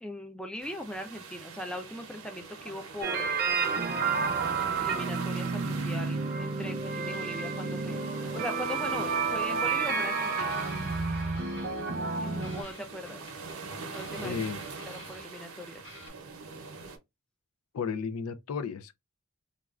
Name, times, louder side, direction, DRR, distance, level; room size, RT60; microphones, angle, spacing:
voice 1, 0.0-3.9 4.8-8.0 8.3-10.6 12.1-13.3 13.9-14.3 14.9-15.9, left 1 dB, 5° left, 0.3 m, -40 dB
sound 1, 0.6-17.0, right 4 dB, 85° right, 0.7 m, -43 dB
sound 2, 3.0-12.6, right 4 dB, 45° right, 0.6 m, -30 dB
sound 3, 10.4-12.2 12.4-15.6 15.8-16.1, left 2 dB, 55° left, 1.6 m, -51 dB
voice 2, 14.2-14.6 17.7-19.0, left 6 dB, 85° left, 0.4 m, -33 dB
3.2 x 2.3 x 2.3 m
head